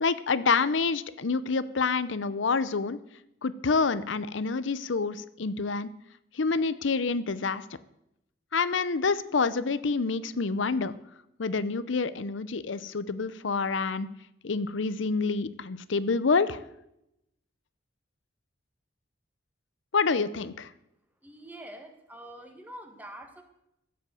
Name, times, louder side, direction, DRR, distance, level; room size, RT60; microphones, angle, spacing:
voice 1, 0.0-3.0 3.4-5.9 6.3-7.6 8.5-10.9 11.4-14.1 14.4-16.6 19.9-20.7, left 4 dB, 70° left, 15 dB, 0.7 m, -27 dB
voice 2, 21.2-23.4, right 1 dB, 10° right, 5 dB, 1.6 m, -45 dB
14.5 x 8.0 x 7.7 m, 0.82 s
head